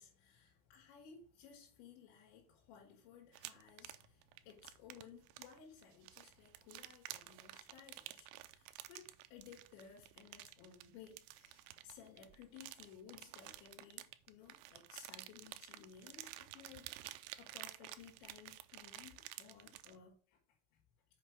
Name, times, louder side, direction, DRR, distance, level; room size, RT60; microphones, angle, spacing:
voice 1, 0.0-20.4 20.7-20.8, left 7 dB, 75° left, 4.0 m, -58 dB
sound 1, 3.3-20.0, right 15 dB, 80° right, 2.7 m, -52 dB
7.8 x 5.8 x 4.8 m
omnidirectional pair, 5.3 m